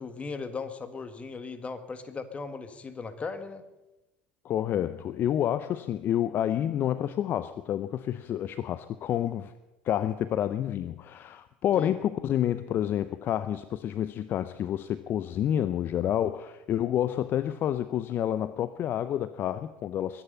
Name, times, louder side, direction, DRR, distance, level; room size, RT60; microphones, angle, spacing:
voice 1, 0.0-3.6 11.7-11.9, left 4 dB, 25° left, 10 dB, 1.7 m, -37 dB
voice 2, 4.4-9.5 9.8-20.2, left 10 dB, 45° left, 14 dB, 0.6 m, -29 dB
22.5 x 9.9 x 5.5 m, 0.99 s
hypercardioid pair, 75°, 5 cm